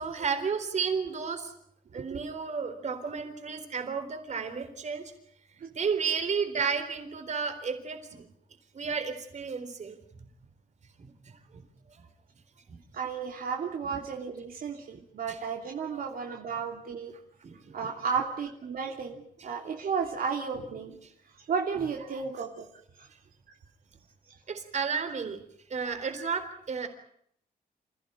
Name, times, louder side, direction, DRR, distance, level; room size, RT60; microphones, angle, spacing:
voice 1, 0.0-1.5 1.9-5.1 5.7-8.3 8.7-10.3 11.0-11.4 11.9-12.0 12.7-12.8 15.3-15.4 15.9-16.1 17.4-17.7 18.1-18.2 20.5-20.6 22.1-22.2 24.5-25.4 25.7-26.9, right 5 dB, 50° right, 8 dB, 4.0 m, -33 dB
voice 2, 12.9-17.1 17.7-21.0 21.5-22.7 23.0-23.1, right 6 dB, 70° right, 1 dB, 3.0 m, -33 dB
28.0 x 16.0 x 9.1 m, 0.70 s
wide cardioid pair, 135°, 15 cm